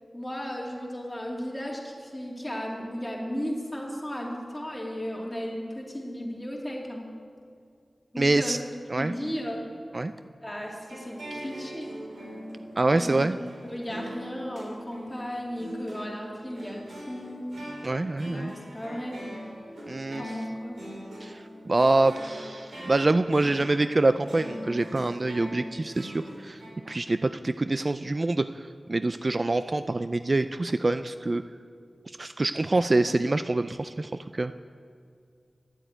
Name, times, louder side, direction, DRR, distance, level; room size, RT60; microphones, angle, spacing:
voice 1, 0.1-7.0 8.1-8.6 9.0-9.6 10.4-11.9 12.9-13.3 13.6-17.5 18.3-19.2 20.2-20.8, equal, 15° left, -2 dB, 2.7 m, -35 dB
voice 2, 8.2-8.6 8.9-9.1 9.9-10.1 12.8-13.4 17.8-18.5 19.9-20.3 21.2-26.6 26.9-31.4 32.2-34.5, right 2 dB, 45° right, 12 dB, 0.3 m, -25 dB
sound 1, 10.9-26.7, equal, 85° right, 3.5 m, -41 dB
10.5 x 7.9 x 8.9 m, 2.3 s
cardioid pair, 50°, 0 cm